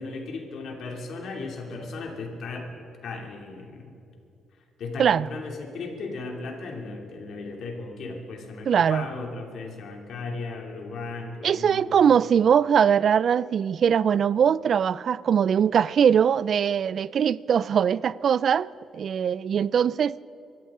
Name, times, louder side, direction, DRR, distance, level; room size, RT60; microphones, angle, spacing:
voice 1, 0.0-2.7 3.0-3.9 4.8-12.0, left 3 dB, 70° left, 2.7 m, -36 dB
voice 2, 8.7-9.1 11.4-18.7 18.9-20.2, right 8 dB, 55° right, 0.3 m, -21 dB
24.5 x 13.5 x 3.8 m
cardioid pair, 90°, 0 cm